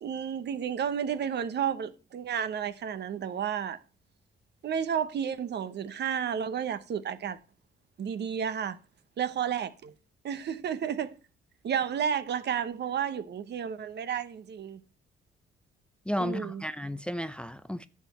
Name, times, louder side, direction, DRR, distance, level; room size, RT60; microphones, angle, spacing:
voice 1, 0.0-3.8 4.6-7.4 8.0-8.8 9.2-9.9 10.2-11.1 11.6-14.8 16.2-16.6, right 8 dB, 60° right, 0.9 m, -32 dB
voice 2, 16.1-17.9, equal, 5° left, 0.5 m, -33 dB
11.0 x 7.4 x 4.3 m
cardioid pair, 90°, 20 cm